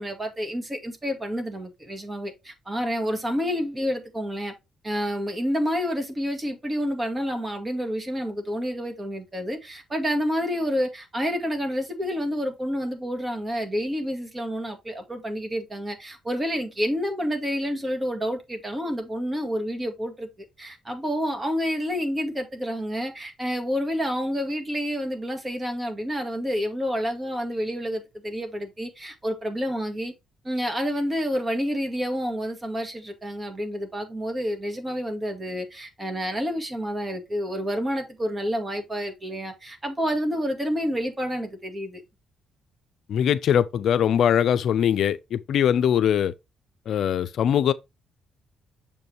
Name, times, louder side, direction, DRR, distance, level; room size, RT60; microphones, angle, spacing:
voice 1, 0.0-4.5 4.8-20.3 20.6-30.1 30.4-42.0, equal, 20° right, 2.0 m, -29 dB
voice 2, 43.1-46.3 46.9-47.7, left 9 dB, 70° left, 0.4 m, -21 dB
7.0 x 5.3 x 3.0 m
cardioid pair, 90°, 0 cm